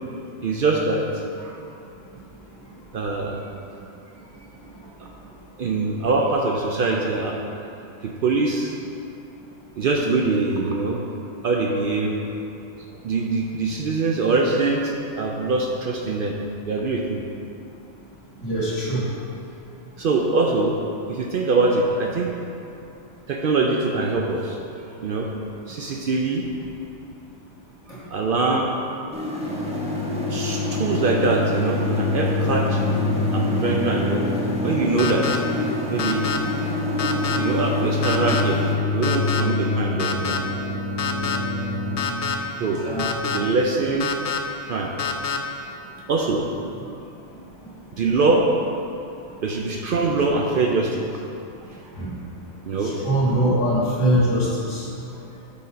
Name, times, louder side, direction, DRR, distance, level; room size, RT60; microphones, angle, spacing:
voice 1, 0.4-1.6 2.9-3.4 5.0-5.1 5.6-7.4 8.0-8.7 9.8-11.0 11.4-12.2 13.0-16.3 16.7-17.2 20.0-20.8 21.1-22.3 23.3-24.6 25.0-25.3 25.7-26.5 27.9-28.8 29.2-29.4 30.3-32.8 33.3-34.3 34.6-35.4 35.9-36.3 37.4-38.6 38.9-40.4 42.1-43.0 43.3-44.1 44.6-45.0 46.1-46.5 48.0-48.5 49.4-51.1 52.6-52.9, right 3 dB, 60° right, 0 dB, 0.6 m, -23 dB
voice 2, 18.4-19.0 23.5-23.6 42.6-43.4 52.0-52.1 52.8-54.8, right 1 dB, 75° left, -7 dB, 2.0 m, -23 dB
sound 1, 29.1-38.7, left 1 dB, 5° right, 0.6 m, -29 dB
sound 2, 29.4-42.0, left 3 dB, 10° left, 1.5 m, -26 dB
sound 3, 35.0-35.4 36.0-36.4 37.0-37.4 38.0-38.4 39.0-39.4 40.0-40.4 41.0-41.4 42.0-42.3 43.0-43.4 44.0-44.4 45.0-45.4, left 7 dB, 60° left, 0.6 m, -26 dB
6.8 x 4.1 x 5.1 m, 2.7 s
omnidirectional pair, 1.2 m